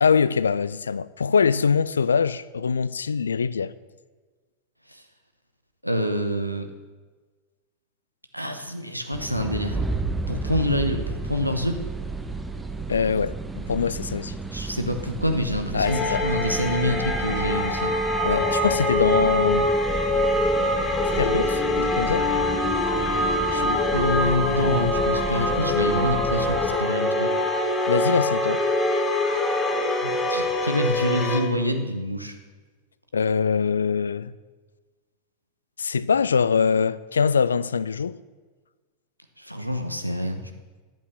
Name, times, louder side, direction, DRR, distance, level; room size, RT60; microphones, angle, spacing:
voice 1, 0.0-3.7 12.9-14.4 15.7-16.2 18.2-19.7 21.0-22.3 23.5-23.8 27.9-28.6 33.1-34.3 35.8-38.2, left 6 dB, 70° left, 0.3 m, -23 dB
voice 2, 5.8-6.7 8.3-9.9 10.3-11.8 14.5-18.0 23.9-27.3 30.0-32.3 39.4-40.4, left 1 dB, 90° right, 0.9 m, -26 dB
sound 1, 9.1-26.8, right 3 dB, 10° right, 0.8 m, -32 dB
sound 2, 15.8-31.4, left 1 dB, 10° left, 1.8 m, -24 dB
10.5 x 8.5 x 5.9 m
figure-of-eight pair, 90°, 0 cm